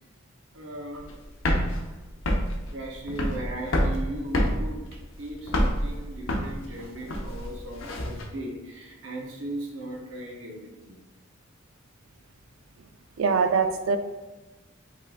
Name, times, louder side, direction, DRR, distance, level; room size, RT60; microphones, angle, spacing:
voice 1, 0.5-1.0 2.7-4.8 5.2-11.0, right 1 dB, 70° right, -1 dB, 0.9 m, -37 dB
sound 1, 0.9-8.2, equal, 80° left, 0.8 m, -27 dB
voice 2, 13.2-14.0, right 5 dB, 85° right, 7 dB, 0.5 m, -23 dB
5.3 x 2.5 x 3.7 m, 1.1 s
head